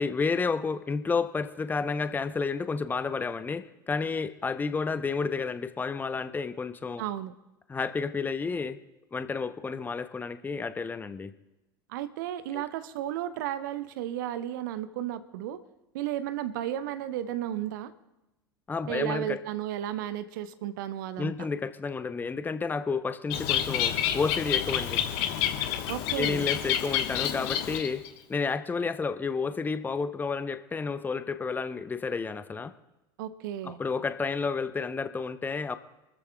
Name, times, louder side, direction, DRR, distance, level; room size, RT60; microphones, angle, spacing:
voice 1, 0.0-7.0 7.7-8.8 9.1-11.3 12.5-12.6 18.7-19.4 21.2-25.0 26.2-28.0 28.3-32.7 33.6-35.8, left 4 dB, 15° left, 12 dB, 0.8 m, -31 dB
voice 2, 7.0-7.3 11.9-15.6 15.9-17.9 18.9-21.3 25.9-26.5 33.2-33.8, right 11 dB, 60° right, 13 dB, 0.8 m, -33 dB
Bird, 23.3-28.1, left 10 dB, 55° left, 1.3 m, -29 dB
27.0 x 14.0 x 2.3 m, 1.0 s
figure-of-eight pair, 75°, 12 cm